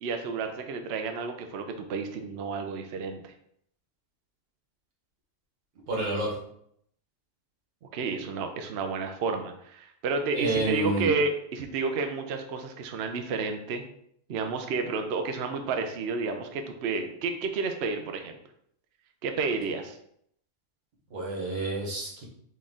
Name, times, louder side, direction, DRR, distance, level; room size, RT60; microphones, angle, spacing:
voice 1, 0.0-3.3 7.9-13.8 14.3-18.4 19.2-20.0, right 4 dB, 65° right, 6 dB, 0.7 m, -31 dB
voice 2, 5.9-6.3 10.3-11.1 21.1-22.2, right 2 dB, 85° right, -2 dB, 1.6 m, -29 dB
4.4 x 3.2 x 3.6 m, 0.70 s
omnidirectional pair, 1.4 m